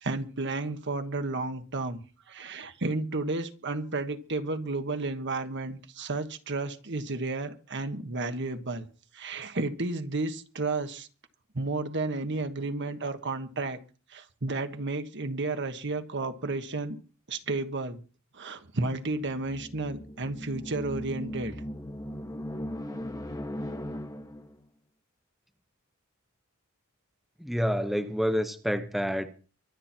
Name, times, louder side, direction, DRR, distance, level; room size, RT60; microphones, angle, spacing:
voice 1, 0.0-8.9 9.1-11.1 11.5-13.8 14.1-17.0 17.3-18.0 18.3-21.5, right 3 dB, 55° right, 1.4 m, -32 dB
sound 1, 19.1-24.6, equal, 15° left, 1.2 m, -38 dB
voice 2, 27.4-29.3, equal, ahead, 0.9 m, -28 dB
24.5 x 8.9 x 4.5 m
head